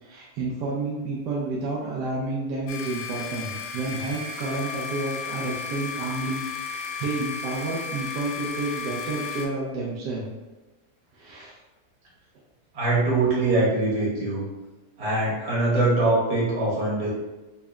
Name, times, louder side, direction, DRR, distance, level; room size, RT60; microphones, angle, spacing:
voice 1, 0.0-10.3 11.1-11.6, right 3 dB, 90° right, -5 dB, 1.3 m, -30 dB
sound 1, 2.7-9.4, left 6 dB, 80° left, 1.1 m, -34 dB
voice 2, 12.7-14.4 15.0-17.1, right 2 dB, 70° right, -7 dB, 1.8 m, -23 dB
3.9 x 2.1 x 3.5 m, 1.1 s
omnidirectional pair, 1.8 m